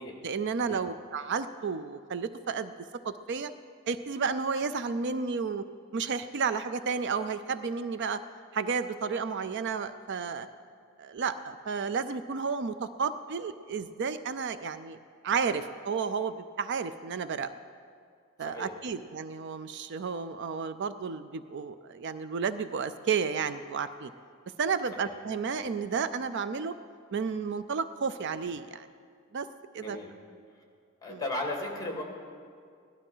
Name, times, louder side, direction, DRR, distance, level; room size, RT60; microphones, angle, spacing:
voice 1, 0.2-2.7 3.0-3.5 3.9-5.6 5.9-8.2 8.5-10.5 11.0-15.0 15.2-17.5 18.4-24.1 24.6-26.8 27.1-28.9 29.3-29.5 29.7-30.0 31.1-31.2, right 5 dB, 55° right, 12 dB, 0.5 m, -32 dB
voice 2, 29.8-30.1 31.0-32.0, left 2 dB, 20° left, 1 dB, 2.1 m, -36 dB
17.5 x 12.0 x 5.6 m, 2.2 s
head